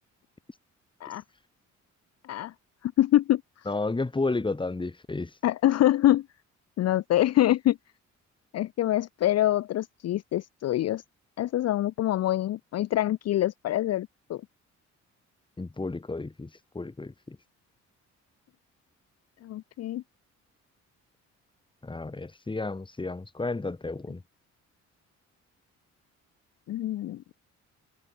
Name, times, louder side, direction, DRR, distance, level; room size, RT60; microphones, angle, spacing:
voice 1, 2.8-3.4 5.4-6.3 6.8-7.8 8.5-11.0 11.4-14.4 19.4-20.0 26.7-27.2, left 13 dB, 55° left, 0.6 m, -25 dB
voice 2, 3.7-5.3 15.6-16.5 16.7-17.4 21.8-24.2, left 3 dB, 15° left, 1.9 m, -32 dB
cardioid pair, 90°, 30 cm